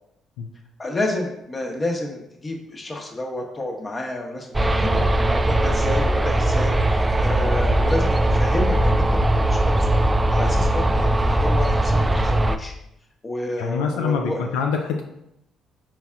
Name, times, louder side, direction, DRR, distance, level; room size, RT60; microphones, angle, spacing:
voice 1, 0.8-10.0 10.3-12.7 13.2-14.5, left 1 dB, 30° left, 1 dB, 0.9 m, -30 dB
sound 1, 4.5-12.6, right 1 dB, 20° right, 0.3 m, -19 dB
voice 2, 13.6-15.0, left 5 dB, 85° left, 2 dB, 0.3 m, -25 dB
4.5 x 4.0 x 2.4 m, 0.80 s
supercardioid pair, 60°, 0 cm